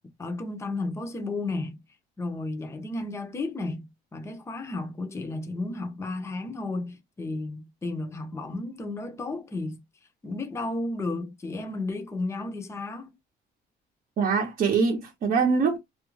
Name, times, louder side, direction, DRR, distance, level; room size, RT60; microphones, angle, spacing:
voice 1, 0.2-1.8 2.2-9.8 10.2-13.1, left 2 dB, 15° left, 0.6 m, -33 dB
voice 2, 14.2-15.8, right 5 dB, 50° right, 0.7 m, -23 dB
2.4 x 2.2 x 3.0 m
cardioid pair, 110°, 17 cm